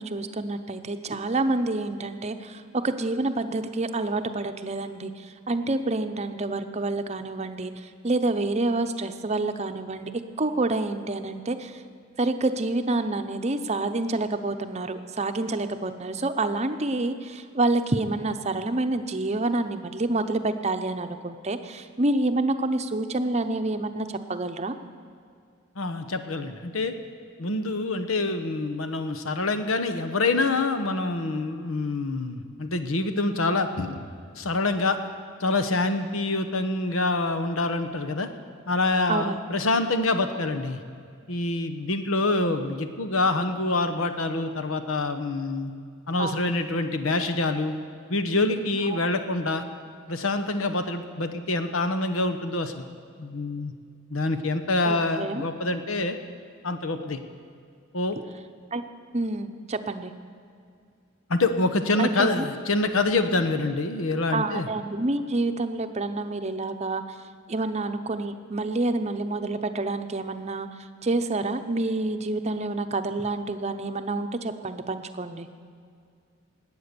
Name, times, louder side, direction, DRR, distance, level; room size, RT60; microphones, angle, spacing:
voice 1, 0.0-10.1 10.4-11.8 12.2-24.8 39.1-39.4 46.2-46.5 48.9-49.1 54.8-55.4 58.7-58.8 59.1-60.1 62.0-62.4 64.3-67.2 67.5-75.5, right 2 dB, 35° right, 8 dB, 0.7 m, -28 dB
voice 2, 25.8-26.9 27.4-34.0 34.3-35.0 35.4-38.3 38.7-40.8 41.3-45.7 46.1-47.7 48.1-49.6 50.1-52.8 53.2-53.7 54.1-56.2 56.6-57.2 57.9-58.2 61.3-64.7, left 2 dB, 85° left, 9 dB, 1.0 m, -26 dB
19.0 x 8.9 x 6.8 m, 2.3 s
head